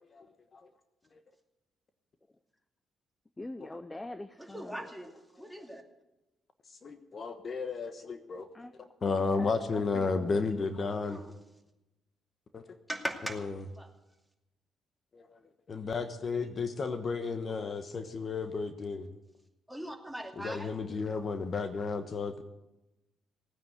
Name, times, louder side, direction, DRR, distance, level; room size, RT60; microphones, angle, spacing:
voice 1, 0.1-0.7 1.1-1.2 6.7-8.5 9.0-11.2 12.5-12.6 13.3-13.5 15.1-15.4 15.7-19.1 20.4-22.4, left 4 dB, 45° left, 9 dB, 1.2 m, -33 dB
voice 2, 3.4-4.9 8.5-8.7 9.4-10.5, left 2 dB, 15° left, 11 dB, 0.7 m, -44 dB
voice 3, 4.4-5.8 11.1-11.3 12.9-13.4 13.8-13.9 19.7-20.7, right 1 dB, ahead, 2 dB, 2.5 m, -40 dB
17.0 x 9.4 x 8.0 m, 0.97 s
cardioid pair, 90°, 0 cm